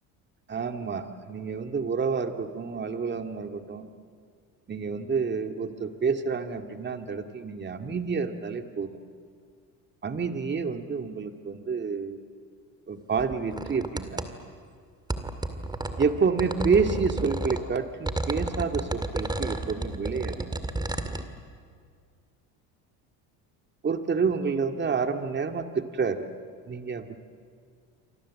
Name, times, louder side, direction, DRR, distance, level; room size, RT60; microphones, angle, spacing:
voice 1, 0.5-3.9 4.7-9.0 10.0-12.2 12.9-14.3 16.0-20.6 23.8-26.3 26.7-27.2, right 5 dB, 30° right, 6 dB, 2.1 m, -29 dB
sound 1, 13.2-14.3 15.1-17.6 18.1-21.2, right 2 dB, 10° right, 2.1 m, -32 dB
28.5 x 24.5 x 7.6 m, 2.1 s
supercardioid pair, 95°, 38 cm